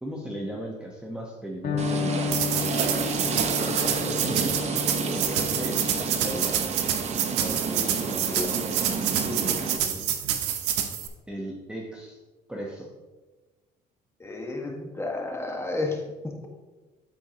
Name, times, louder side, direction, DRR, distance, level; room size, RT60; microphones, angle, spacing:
voice 1, 0.0-2.5 5.1-7.0 11.3-12.2 12.5-12.9, right 1 dB, 5° right, -2 dB, 1.1 m, -37 dB
Electric guitar, 1.6-9.5, left 6 dB, 55° left, 1.9 m, -34 dB
sound 1, 1.8-9.8, right 5 dB, 40° right, 0.9 m, -30 dB
sound 2, 2.3-11.1, right 10 dB, 90° right, 0.9 m, -28 dB
voice 2, 3.6-4.2 6.2-6.6 7.4-10.1 14.2-16.0, left 2 dB, 15° left, 1 dB, 1.6 m, -34 dB
13.0 x 4.5 x 2.9 m, 1.2 s
cardioid pair, 110°, 17 cm